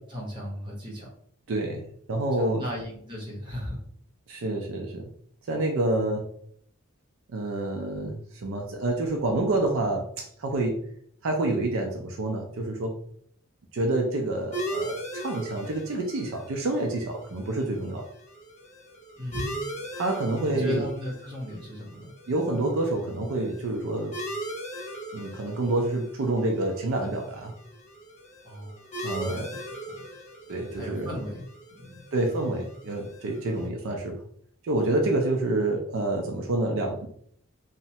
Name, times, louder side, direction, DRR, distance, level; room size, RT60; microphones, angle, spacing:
voice 1, 0.1-1.1 2.4-3.8 5.5-5.6 5.9-6.0 19.2-19.5 20.5-22.1 28.4-29.6 29.8-30.0 30.7-31.5 31.7-32.1 33.5-33.7, left 1 dB, 20° right, -4 dB, 0.8 m, -36 dB
voice 2, 1.5-2.7 4.3-5.1 5.5-6.3 7.3-10.8 11.2-13.0 13.7-18.1 20.0-20.8 22.3-24.2 25.1-27.5 29.0-29.5 30.5-31.1 32.1-34.2 34.6-37.1, right 2 dB, 65° right, 2 dB, 0.4 m, -28 dB
sound 1, 14.5-33.7, right 1 dB, 30° left, 0.5 m, -40 dB
3.0 x 2.1 x 2.7 m, 0.63 s
head